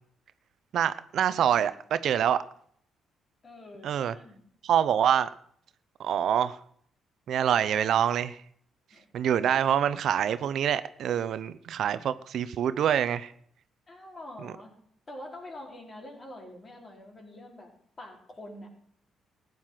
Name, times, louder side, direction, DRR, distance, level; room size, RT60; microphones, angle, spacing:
voice 1, 0.7-2.4 3.8-4.1 4.6-5.3 6.0-6.6 7.3-8.4 9.1-13.3 14.4-14.5, right 9 dB, 70° right, 14 dB, 0.7 m, -26 dB
voice 2, 3.4-4.4 8.9-9.0 13.9-14.7 15.1-17.7 18.0-18.7, left 1 dB, 35° left, 0 dB, 4.8 m, -45 dB
15.0 x 9.4 x 5.9 m, 0.63 s
cardioid pair, 90°, 0 cm